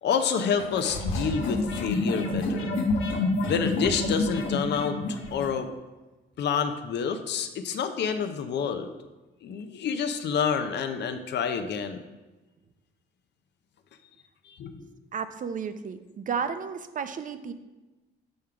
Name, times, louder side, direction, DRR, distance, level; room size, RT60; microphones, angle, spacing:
voice 1, 0.0-2.7 3.5-5.0 5.3-5.7 6.4-8.9 9.4-12.0 14.5-14.8, left 6 dB, 60° left, 8 dB, 0.6 m, -28 dB
sound 1, 0.6-5.5, left 2 dB, 85° left, 0.9 m, -28 dB
voice 2, 15.1-17.5, right 6 dB, 40° right, 10 dB, 0.5 m, -33 dB
6.4 x 3.6 x 5.7 m, 1.1 s
cardioid pair, 90°, 20 cm